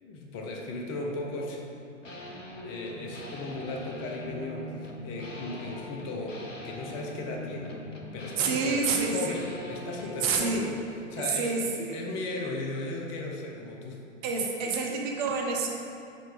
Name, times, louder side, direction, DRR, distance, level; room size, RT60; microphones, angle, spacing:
voice 1, 0.0-1.6 2.6-7.8 8.1-10.6 11.1-14.7, left 2 dB, 25° left, 0 dB, 0.6 m, -37 dB
sound 1, 2.0-10.7, left 1 dB, 80° left, 1.0 m, -42 dB
voice 2, 8.4-9.4 10.2-10.7 11.2-12.0 14.2-15.7, right 4 dB, 30° right, 0 dB, 0.8 m, -28 dB
5.1 x 4.3 x 5.2 m, 2.7 s
figure-of-eight pair, 105°, 37 cm